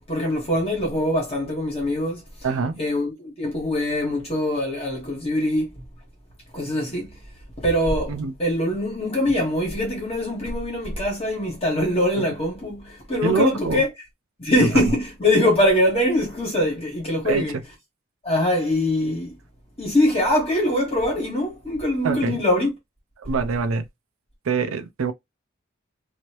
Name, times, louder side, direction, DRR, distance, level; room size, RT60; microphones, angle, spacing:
voice 1, 0.1-2.2 2.8-5.8 6.5-7.1 7.6-13.9 14.4-17.5 18.2-19.3 19.8-22.7, left 1 dB, 30° left, 1.5 m, -23 dB
voice 2, 2.4-2.8 8.1-8.3 12.2-12.4 13.2-13.8 14.6-14.9 17.2-17.6 22.0-22.4 23.2-23.9 24.5-25.1, right 4 dB, 90° right, 0.5 m, -24 dB
3.0 x 2.8 x 2.9 m
head